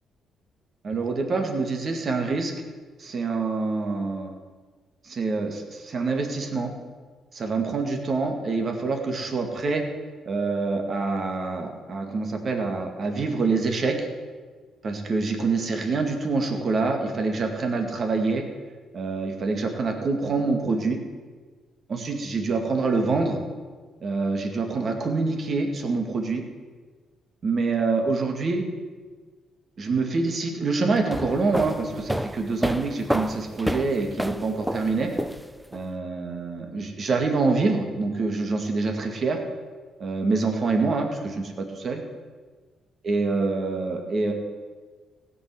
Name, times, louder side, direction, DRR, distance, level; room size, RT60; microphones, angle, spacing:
voice 1, 0.8-2.5 3.0-4.3 5.0-6.7 7.3-9.8 10.3-14.1 14.8-18.4 18.9-21.0 21.9-23.4 24.0-26.4 27.4-28.6 29.8-35.1 35.7-39.4 40.0-42.0 43.0-44.3, right 3 dB, 45° right, 3 dB, 2.1 m, -26 dB
sound 1, 31.0-35.8, equal, 5° right, 0.5 m, -29 dB
16.5 x 5.6 x 7.8 m, 1.4 s
cardioid pair, 90°, 0 cm